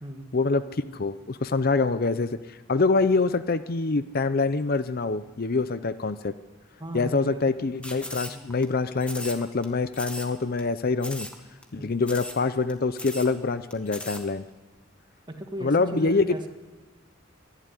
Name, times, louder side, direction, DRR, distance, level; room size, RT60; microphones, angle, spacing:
voice 1, 0.3-6.3 6.9-11.3 11.7-14.4 15.6-16.4, left 3 dB, 45° left, 13 dB, 0.6 m, -25 dB
voice 2, 6.8-7.8 8.3-8.4 11.8-11.9 15.3-16.5, right 1 dB, 20° right, 4 dB, 1.9 m, -37 dB
sound 1, 7.8-8.7 9.0-9.7 9.9-10.3 10.6-10.7 11.0-11.4 11.6-11.7 12.0-12.4 12.7-12.8 13.0-13.3 13.7-14.2, left 1 dB, 5° left, 1.8 m, -37 dB
23.0 x 11.5 x 9.8 m, 1.2 s
head